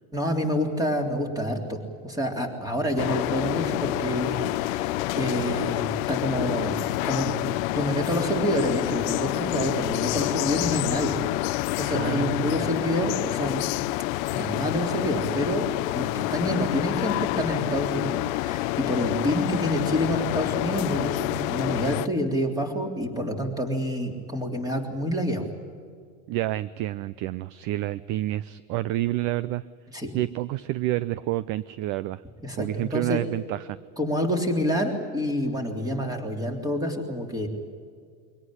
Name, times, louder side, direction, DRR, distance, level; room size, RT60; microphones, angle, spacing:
voice 1, 0.1-13.6 14.3-15.7 15.9-25.5 29.9-30.1 32.4-33.2 34.0-37.5, equal, 10° right, 4 dB, 3.5 m, -28 dB
sound 1, 3.0-22.1, left 18 dB, 65° left, 0.8 m, -28 dB
voice 2, 11.9-12.7 26.3-29.6 30.1-32.2 32.6-33.8, right 15 dB, 45° right, 18 dB, 0.6 m, -29 dB
23.5 x 18.0 x 9.9 m, 2.1 s
supercardioid pair, 140°, 44 cm